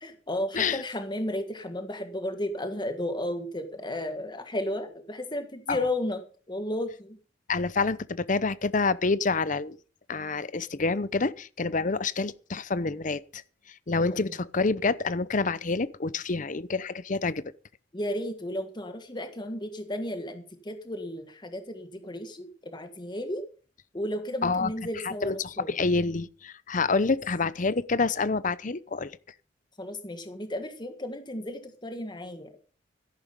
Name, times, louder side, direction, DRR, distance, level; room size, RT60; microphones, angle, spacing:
voice 1, 0.0-6.2 6.5-7.2 14.1-14.3 17.9-23.4 23.9-25.7 29.8-32.6, left 1 dB, 25° left, 1.7 m, -33 dB
voice 2, 7.5-9.8 10.1-13.4 13.9-17.4 24.4-24.7 25.0-29.1, left 4 dB, 45° left, 0.7 m, -27 dB
13.5 x 11.0 x 5.3 m
head